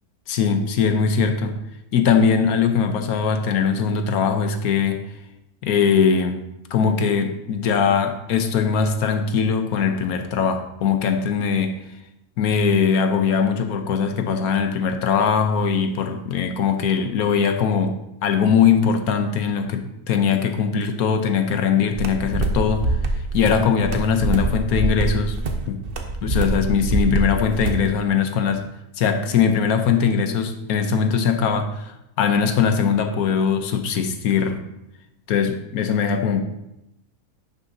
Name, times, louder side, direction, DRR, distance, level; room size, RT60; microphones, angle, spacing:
voice 1, 0.3-1.5 1.9-5.0 5.6-6.4 6.7-11.8 12.4-22.8 23.3-25.4 25.7-25.8 26.2-28.7 29.0-31.9 32.2-34.6 35.3-36.4, left 6 dB, 75° left, 6 dB, 1.3 m, -21 dB
sound 1, 21.9-27.9, right 2 dB, 45° right, 0.9 m, -24 dB
11.0 x 6.8 x 2.7 m, 0.87 s
omnidirectional pair, 1.6 m